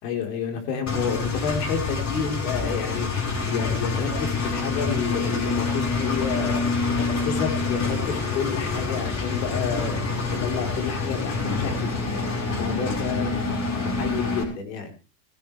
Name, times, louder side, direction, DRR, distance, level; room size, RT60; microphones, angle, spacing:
voice 1, 0.0-3.1 3.5-6.6 7.0-10.0 10.3-13.4 13.8-14.9, left 6 dB, 90° left, 4 dB, 4.3 m, -30 dB
Engine, 0.9-14.4, left 4 dB, 35° left, 5.5 m, -27 dB
19.5 x 14.0 x 3.4 m, 0.33 s
supercardioid pair, 130°, 48 cm